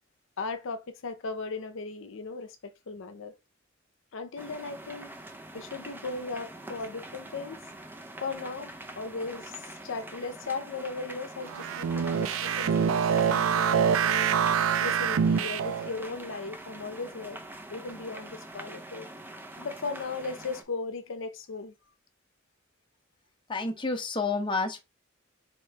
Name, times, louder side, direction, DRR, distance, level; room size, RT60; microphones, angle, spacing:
voice 1, 0.4-3.3 4.1-5.1 5.5-7.6 8.2-14.4 14.8-17.4 17.7-19.1 19.6-21.7, left 4 dB, 70° left, 0.6 m, -37 dB
sound 1, 4.4-20.6, right 2 dB, 10° right, 0.5 m, -44 dB
sound 2, 11.5-16.0, right 7 dB, 75° right, 0.4 m, -25 dB
voice 2, 23.5-24.8, left 3 dB, 25° left, 0.7 m, -29 dB
4.3 x 3.0 x 3.3 m
head